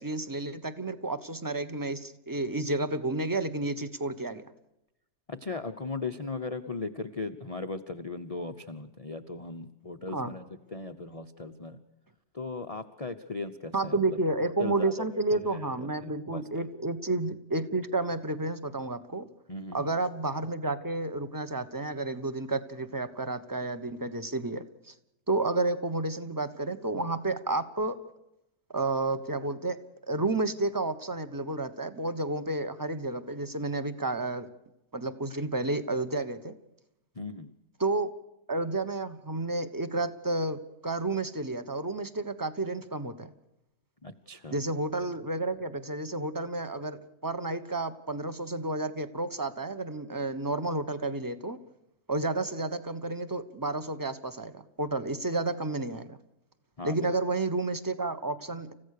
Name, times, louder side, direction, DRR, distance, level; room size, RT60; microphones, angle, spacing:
voice 1, 0.0-4.5 10.1-10.3 13.7-19.3 19.7-24.9 25.3-28.0 28.7-29.8 30.1-34.5 34.9-36.5 37.8-38.1 38.5-43.3 44.5-51.6 52.1-56.2 56.8-58.7, right 2 dB, 15° right, 11 dB, 1.0 m, -31 dB
voice 2, 5.3-11.8 12.3-14.2 14.6-16.7 19.5-19.9 37.2-37.5 44.0-44.6 56.8-57.1, left 3 dB, 35° left, 8 dB, 0.6 m, -38 dB
29.0 x 15.5 x 6.7 m, 0.88 s
omnidirectional pair, 1.6 m